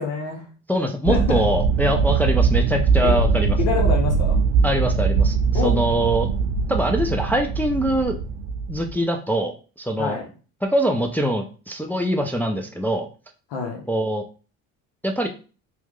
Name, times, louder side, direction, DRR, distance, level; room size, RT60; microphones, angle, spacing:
voice 1, 0.0-0.5 1.1-1.5 3.0-3.3 3.6-4.4 5.5-5.8 10.0-10.3 13.5-13.9, left 5 dB, 70° left, 1 dB, 0.8 m, -26 dB
voice 2, 0.7-3.6 4.6-6.3 6.7-8.2 8.7-10.2 10.6-13.1 13.9-14.2 15.0-15.3, equal, 5° left, 3 dB, 0.4 m, -23 dB
sound 1, 1.0-8.9, right 5 dB, 75° right, 0.5 m, -21 dB
3.0 x 2.2 x 3.5 m, 0.36 s
hypercardioid pair, 60°, 40 cm